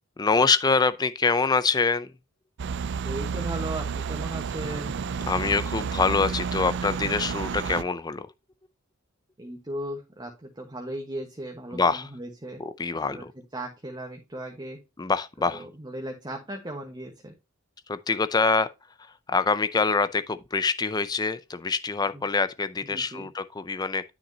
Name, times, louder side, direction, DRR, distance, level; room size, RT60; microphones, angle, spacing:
voice 1, 0.2-2.1 5.3-8.3 11.7-12.1 12.6-13.3 15.0-15.6 17.9-18.7 19.0-24.1, left 4 dB, 20° left, 0.4 m, -25 dB
sound 1, 2.6-7.8, right 6 dB, 55° right, 0.4 m, -31 dB
voice 2, 3.0-4.9 9.4-12.6 13.1-13.2 13.5-14.8 15.4-17.3 22.1-22.2 22.9-23.3, right 1 dB, 20° right, 1.2 m, -37 dB
9.9 x 6.0 x 2.8 m
head